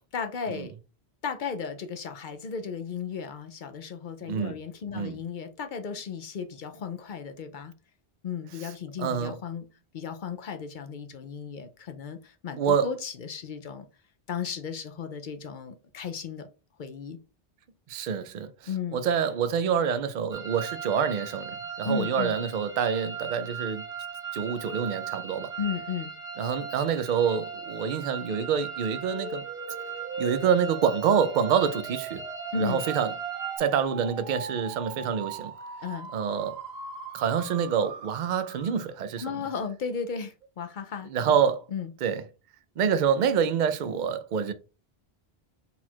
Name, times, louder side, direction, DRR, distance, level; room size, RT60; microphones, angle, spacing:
voice 1, 0.1-0.8 1.2-7.7 8.2-9.7 9.9-13.9 14.3-16.5 16.8-17.2 18.6-19.0 21.8-22.4 25.6-26.1 32.5-32.8 35.8-36.1 39.2-41.4 41.7-41.9, left 6 dB, 60° left, 0.7 m, -35 dB
voice 2, 9.0-9.4 12.6-12.9 17.9-18.5 18.9-23.8 24.3-25.5 26.4-29.4 30.2-32.2 32.6-33.1 33.6-35.5 36.1-36.6 37.1-39.2 41.1-41.6 42.0-42.2 42.8-44.5, right 7 dB, 55° right, 0.6 m, -26 dB
sound 1, 20.3-33.6, right 6 dB, 25° left, 1.2 m, -38 dB
sound 2, 29.1-38.9, right 5 dB, 75° right, 1.0 m, -39 dB
4.1 x 2.4 x 4.3 m
omnidirectional pair, 1.1 m